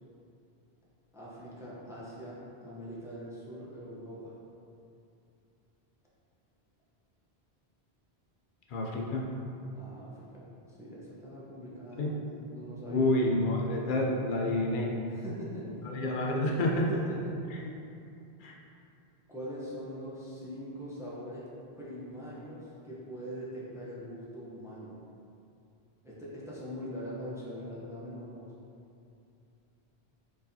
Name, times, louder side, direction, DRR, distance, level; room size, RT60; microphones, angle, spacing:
voice 1, 1.1-4.4 9.7-13.2 15.1-15.7 16.9-17.3 19.3-25.0 26.0-28.5, equal, 5° right, -7 dB, 0.5 m, -42 dB
voice 2, 8.7-9.2 12.0-12.1 12.9-14.9 15.8-16.9 17.5-17.7 18.4-18.6, left 1 dB, 60° left, -1 dB, 0.6 m, -29 dB
4.5 x 3.2 x 2.7 m, 2.7 s
omnidirectional pair, 1.1 m